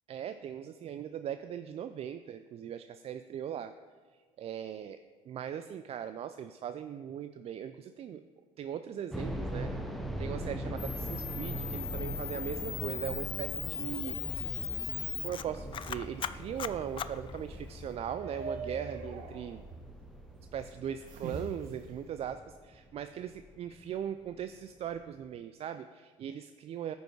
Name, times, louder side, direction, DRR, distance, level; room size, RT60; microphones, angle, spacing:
voice 1, 0.1-3.7 4.4-5.0 5.3-8.2 8.6-9.7 10.2-14.2 15.2-19.6 20.5-26.9, right 9 dB, 45° right, 10 dB, 0.4 m, -39 dB
sound 1, 9.1-24.0 24.3-24.4 25.0-25.2, equal, ahead, 0.9 m, -41 dB
Camera, 10.8-17.9, left 9 dB, 35° left, 0.4 m, -39 dB
sound 2, 10.9-22.2, right 3 dB, 60° right, 1.4 m, -47 dB
13.0 x 5.4 x 4.7 m, 1.5 s
supercardioid pair, 95°, 15 cm